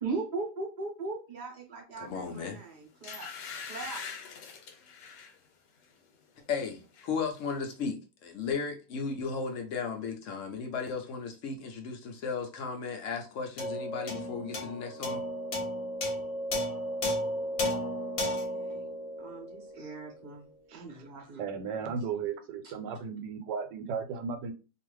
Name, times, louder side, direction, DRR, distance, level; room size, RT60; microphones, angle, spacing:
voice 1, 0.0-3.3 3.6-4.0 18.3-21.4 22.6-22.7, right 3 dB, 40° right, 0.7 m, -39 dB
voice 2, 2.0-2.6 6.5-15.2, left 5 dB, 70° left, 0.7 m, -35 dB
sound 1, 2.3-2.5 3.0-5.4 5.8-6.0 6.4-7.1 7.4-7.5, left 6 dB, 85° left, 1.3 m, -43 dB
sound 2, 13.6-20.2, left 1 dB, 50° left, 1.1 m, -34 dB
voice 3, 21.4-24.5, right 6 dB, 85° right, 1.3 m, -35 dB
2.7 x 2.4 x 3.1 m
omnidirectional pair, 1.8 m